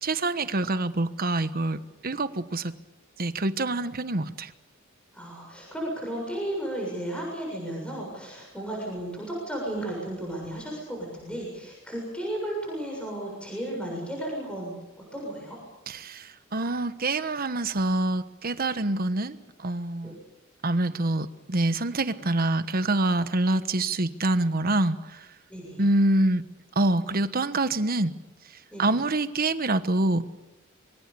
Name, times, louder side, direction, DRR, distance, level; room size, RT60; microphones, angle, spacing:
voice 1, 0.0-2.7 3.2-4.5 15.9-20.2 20.6-25.3 25.8-26.4 26.7-28.1 28.8-30.2, right 2 dB, 50° right, 12 dB, 1.3 m, -26 dB
voice 2, 5.1-14.8 15.1-15.6 20.0-20.1 25.5-25.8 28.7-28.9, right 1 dB, 5° left, -2 dB, 7.1 m, -34 dB
26.0 x 23.5 x 7.0 m, 0.98 s
head